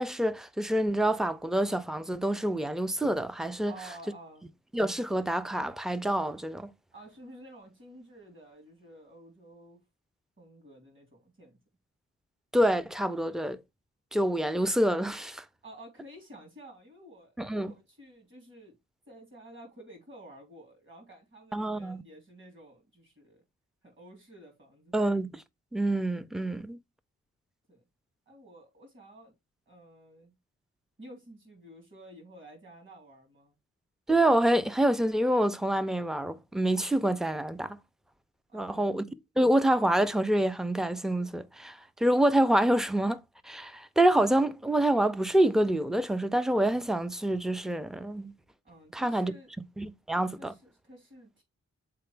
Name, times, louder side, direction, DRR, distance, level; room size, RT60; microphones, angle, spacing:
voice 1, 0.0-3.7 4.7-6.7 12.5-13.6 14.1-15.4 17.4-17.7 21.5-22.0 24.9-25.4 25.7-26.8 34.1-37.8 38.5-39.0 39.4-43.2 43.4-48.3 48.9-49.3 49.8-50.5, right 1 dB, ahead, 0.3 m, -27 dB
voice 2, 3.7-4.5 6.9-9.8 10.4-11.6 15.6-18.8 19.1-23.4 23.8-25.0 27.7-27.8 28.3-29.3 29.7-30.3 31.0-33.5 38.5-38.9 48.6-49.5 50.4-51.4, right 1 dB, 40° right, 3.4 m, -51 dB
6.8 x 4.4 x 3.3 m
wide cardioid pair, 130°, 30 cm